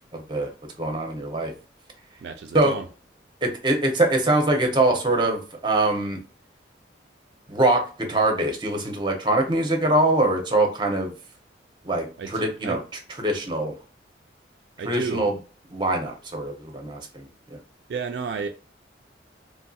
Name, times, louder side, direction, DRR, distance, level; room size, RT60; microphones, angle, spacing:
voice 1, 0.1-0.5 0.8-1.5 2.5-2.7 3.4-6.2 7.5-7.8 8.1-11.1 11.8-12.8 13.2-13.7 14.8-15.3 15.7-17.6, right 2 dB, 25° right, 0.7 m, -23 dB
voice 2, 2.2-2.9 12.2-12.8 14.8-15.3 17.9-18.5, right 5 dB, 60° right, 0.3 m, -32 dB
3.1 x 2.6 x 2.3 m
head